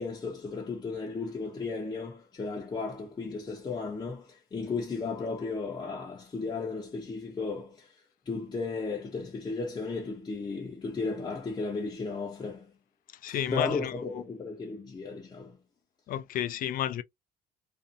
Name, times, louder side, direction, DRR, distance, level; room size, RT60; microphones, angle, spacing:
voice 1, 0.0-12.7 13.3-15.6, left 4 dB, 25° left, 0.7 m, -35 dB
voice 2, 13.2-13.9 16.1-17.0, left 11 dB, 55° left, 0.4 m, -31 dB
2.6 x 2.0 x 2.5 m
cardioid pair, 110°, 17 cm